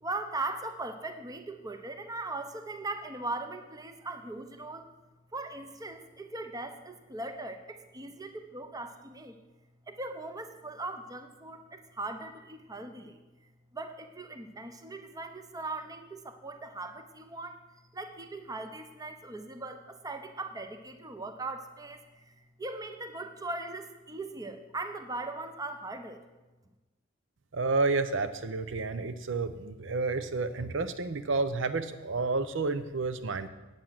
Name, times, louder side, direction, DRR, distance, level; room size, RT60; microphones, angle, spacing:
voice 1, 0.0-4.9 5.3-9.4 9.9-13.2 13.7-17.6 17.9-26.2, right 2 dB, 20° right, 7 dB, 0.8 m, -39 dB
voice 2, 27.5-33.5, right 3 dB, 70° right, 11 dB, 0.7 m, -30 dB
8.8 x 8.2 x 7.4 m, 1.1 s
head